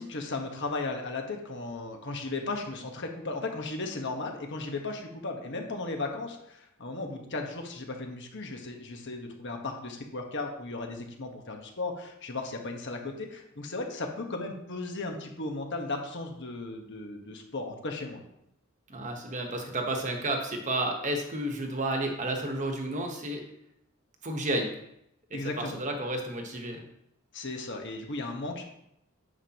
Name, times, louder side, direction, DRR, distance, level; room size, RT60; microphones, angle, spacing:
voice 1, 0.0-18.2 25.3-25.8 27.3-28.7, left 3 dB, 55° left, 3 dB, 1.3 m, -36 dB
voice 2, 18.9-23.4 24.2-24.7 25.3-26.8, right 1 dB, 35° right, 3 dB, 1.2 m, -31 dB
9.6 x 7.1 x 3.0 m, 0.79 s
head